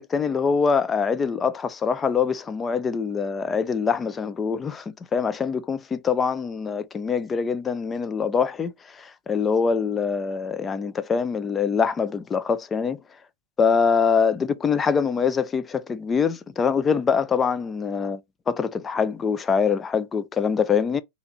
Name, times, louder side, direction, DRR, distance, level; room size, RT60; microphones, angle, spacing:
voice 1, 0.0-13.0 13.6-18.2 18.5-21.0, left 6 dB, 15° left, 0.3 m, -24 dB
4.0 x 2.8 x 4.0 m
supercardioid pair, 165°, 0 cm